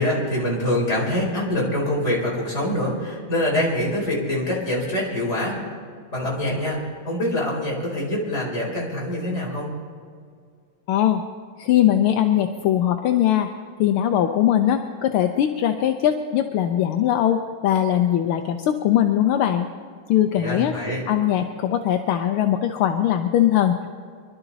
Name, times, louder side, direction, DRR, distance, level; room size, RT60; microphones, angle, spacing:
voice 1, 0.0-5.6 6.1-9.7 20.3-21.0, left 1 dB, 30° left, -4 dB, 4.8 m, -25 dB
voice 2, 10.9-11.2 11.6-13.5 13.8-19.7 20.1-20.7 21.1-23.9, left 11 dB, 80° left, 6 dB, 1.6 m, -20 dB
24.0 x 12.0 x 4.0 m, 2.1 s
omnidirectional pair, 2.4 m